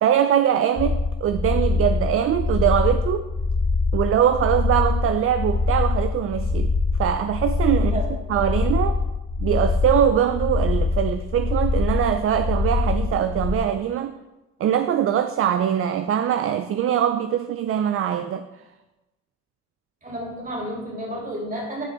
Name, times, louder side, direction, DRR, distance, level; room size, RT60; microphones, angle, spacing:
voice 1, 0.0-3.3 3.9-6.7 7.0-8.0 8.3-9.0 9.4-14.1 14.6-18.5, right 9 dB, 50° right, 0.4 m, -22 dB
sound 1, 0.8-13.5, left 3 dB, 40° left, 1.2 m, -24 dB
voice 2, 7.7-8.2 20.0-21.8, right 1 dB, 25° right, 2.9 m, -31 dB
9.9 x 5.4 x 3.5 m
cardioid pair, 90°, 30 cm